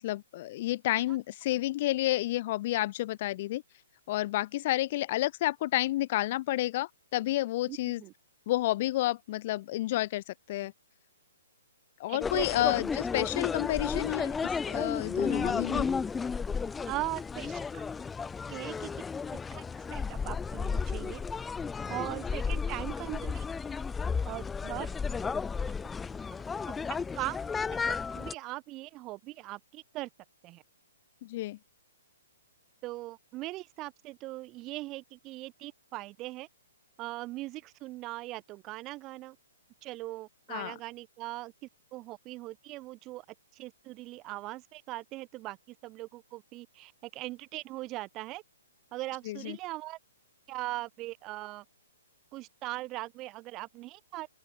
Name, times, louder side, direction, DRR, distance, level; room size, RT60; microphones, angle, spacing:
voice 1, 0.0-3.6 4.1-8.0 8.5-10.7 12.0-15.9 31.2-31.6 40.5-40.7 49.3-49.6, left 16 dB, 35° left, 2.0 m, -30 dB
voice 2, 7.7-8.1 12.1-12.7 16.9-17.8 18.5-18.9 19.3-21.2 21.9-23.4 24.3-24.9 26.7-27.4 27.9-30.1 30.4-30.6 32.8-36.5 37.0-39.4 39.8-41.5 41.9-43.2 43.5-48.4 48.9-50.0 50.5-51.6 52.3-54.3, right 19 dB, 25° right, 4.9 m, -40 dB
sound 1, 12.2-28.3, left 5 dB, 10° left, 0.6 m, -33 dB
open air
figure-of-eight pair, 120°, 0 cm